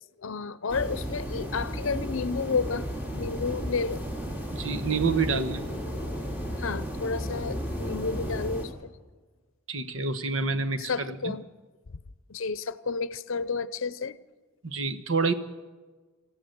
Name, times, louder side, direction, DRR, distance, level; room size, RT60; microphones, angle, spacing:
voice 1, 0.2-2.9 3.2-4.0 6.6-8.9 10.8-11.5 12.3-14.2, left 4 dB, 70° left, 0.7 m, -31 dB
sound 1, 0.7-8.7, equal, 10° right, 3.1 m, -34 dB
voice 2, 4.5-5.6 9.7-11.3 14.6-15.3, right 4 dB, 70° right, 1.2 m, -28 dB
27.0 x 15.0 x 6.8 m
head